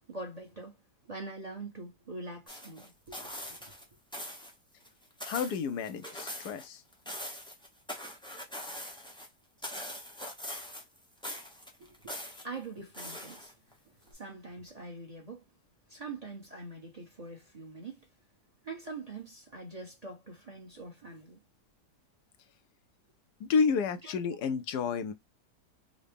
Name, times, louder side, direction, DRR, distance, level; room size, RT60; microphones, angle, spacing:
voice 1, 0.1-0.8 1.0-3.6 11.8-12.1 12.4-13.5 14.1-15.4 15.9-18.0 18.6-21.4 24.0-24.1, right 3 dB, 30° right, 0.9 m, -44 dB
sound 1, 2.5-3.8 4.1-4.5 4.9-6.7 6.9-9.3 9.6-11.0 11.2-12.4 12.9-13.7 14.1-14.2, left 1 dB, 5° left, 0.4 m, -42 dB
voice 2, 5.2-6.8 23.4-25.1, left 5 dB, 80° left, 1.2 m, -30 dB
3.8 x 2.1 x 3.4 m
omnidirectional pair, 1.7 m